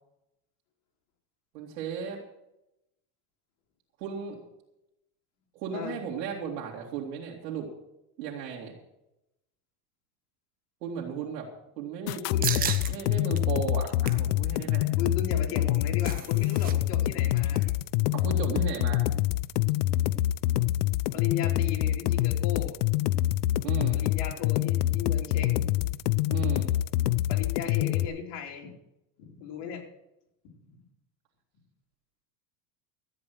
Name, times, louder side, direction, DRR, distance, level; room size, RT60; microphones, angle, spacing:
voice 1, 1.5-2.2 4.0-4.4 5.5-7.7 8.2-8.7 10.8-11.5 11.8-15.0 18.1-19.1 23.6-24.0 26.3-26.7, right 6 dB, 85° right, -3 dB, 3.0 m, -35 dB
sound 1, 12.1-28.1, left 14 dB, 70° left, 0.7 m, -26 dB
voice 2, 12.3-12.7 14.2-14.3 15.0-17.6 21.1-22.8 23.9-25.8 27.3-28.7 29.2-29.9, left 7 dB, 55° left, 1 dB, 3.6 m, -36 dB
sound 2, 12.4-12.9 13.3-13.4 13.8-14.3 15.6-16.7 17.0-17.1 17.5-17.7, right 9 dB, 20° right, 0.6 m, -34 dB
13.5 x 8.9 x 6.4 m, 0.87 s
supercardioid pair, 150°, 48 cm